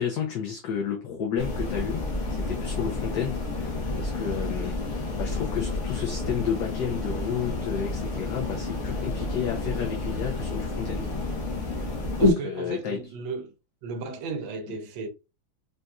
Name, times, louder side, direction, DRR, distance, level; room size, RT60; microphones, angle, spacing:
voice 1, 0.0-11.1 12.2-13.0 14.7-14.8, left 8 dB, 70° left, 1.3 m, -32 dB
sound 1, 1.4-12.3, left 2 dB, 50° left, 0.9 m, -29 dB
voice 2, 12.2-13.5 13.8-15.1, right 4 dB, 80° right, 1.3 m, -35 dB
4.0 x 2.5 x 2.2 m
omnidirectional pair, 2.1 m